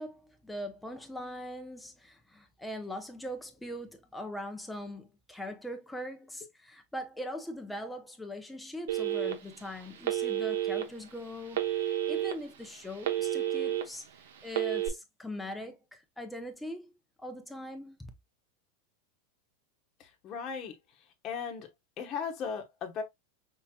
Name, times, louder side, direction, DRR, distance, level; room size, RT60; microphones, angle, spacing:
voice 1, 0.0-14.1 14.4-16.9 17.2-18.1, left 1 dB, 5° left, 0.7 m, -41 dB
Telephone, 8.9-9.6 10.0-10.8 11.5-12.3 12.7-13.8 14.5-14.9, right 12 dB, 80° right, 0.9 m, -30 dB
voice 2, 20.0-20.7 21.2-21.7 22.0-23.0, left 6 dB, 30° left, 1.1 m, -37 dB
5.5 x 2.9 x 2.3 m
supercardioid pair, 160°, 0 cm